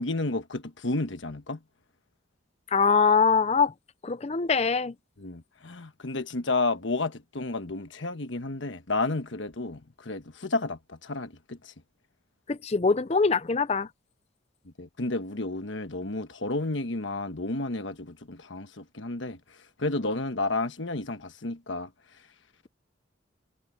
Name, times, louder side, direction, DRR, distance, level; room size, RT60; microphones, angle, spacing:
voice 1, 0.0-1.6 5.2-11.7 14.8-19.4 19.8-21.9, left 2 dB, 85° left, 1.3 m, -31 dB
voice 2, 2.7-3.7 4.0-4.9 12.5-13.9, left 5 dB, 35° left, 0.5 m, -23 dB
head